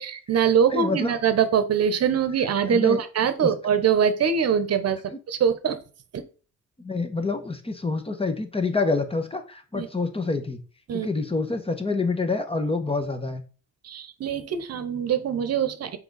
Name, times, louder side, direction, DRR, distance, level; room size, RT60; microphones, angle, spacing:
voice 1, 0.0-5.0 5.3-5.8 6.1-6.2 9.7-9.9 10.9-11.1 13.8-16.0, right 7 dB, 55° right, 11 dB, 0.9 m, -23 dB
voice 2, 0.7-1.1 2.6-3.0 3.4-3.5 6.8-10.6 10.9-13.4, left 3 dB, 20° left, 8 dB, 1.0 m, -27 dB
5.9 x 4.6 x 4.0 m, 0.37 s
cardioid pair, 90°, 30 cm